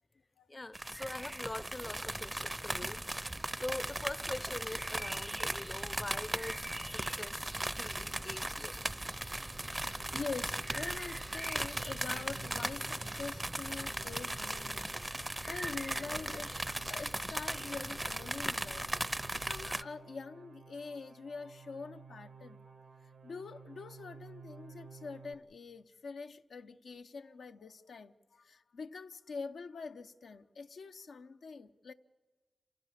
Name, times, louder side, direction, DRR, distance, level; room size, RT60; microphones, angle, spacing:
voice 1, 0.5-8.7, left 2 dB, 30° left, 0.6 m, -43 dB
sound 1, 0.7-19.8, right 1 dB, 20° right, 0.6 m, -38 dB
sound 2, 9.1-25.3, right 5 dB, 90° right, 1.4 m, -55 dB
voice 2, 10.1-16.5 16.9-18.9 19.5-22.7 23.2-31.9, left 4 dB, 85° left, 0.7 m, -45 dB
28.0 x 15.0 x 7.3 m
cardioid pair, 50°, 0 cm